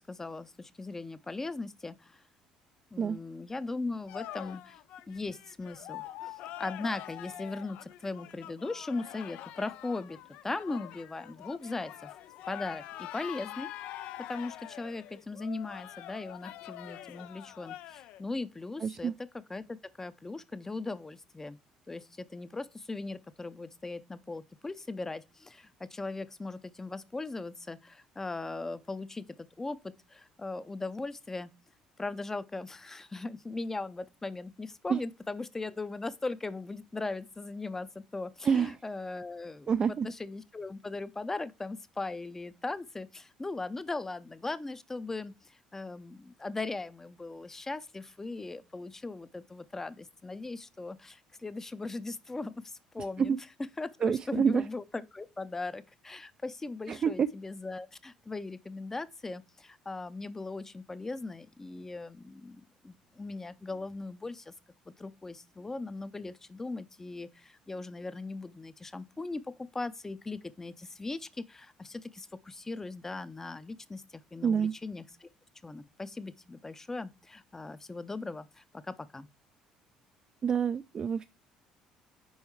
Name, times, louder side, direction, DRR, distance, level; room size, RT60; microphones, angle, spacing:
voice 1, 0.0-2.2 2.9-4.8 5.1-10.2 10.4-12.1 12.5-19.1 19.5-21.6 21.9-31.5 32.0-53.4 53.8-64.5 64.9-75.3 75.6-79.3, left 3 dB, 20° left, 0.6 m, -39 dB
sound 1, 4.1-18.2, left 13 dB, 75° left, 0.4 m, -45 dB
voice 2, 18.8-19.1 34.9-35.0 38.4-38.7 39.7-40.1 53.2-53.4 54.0-54.6 56.9-57.3 74.4-74.7 80.4-81.2, right 7 dB, 40° right, 0.3 m, -27 dB
5.5 x 4.4 x 4.6 m
supercardioid pair, 80°, 2 cm